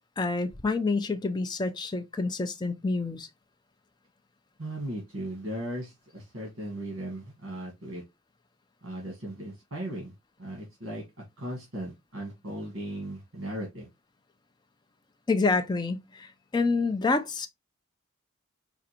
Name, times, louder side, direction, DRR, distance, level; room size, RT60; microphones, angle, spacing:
voice 1, 0.2-3.3 15.3-17.5, left 3 dB, 20° left, 0.4 m, -28 dB
voice 2, 4.6-8.0 8.8-10.1 10.4-11.0 11.4-13.9, right 1 dB, 70° right, 1.3 m, -37 dB
4.8 x 2.5 x 2.8 m
head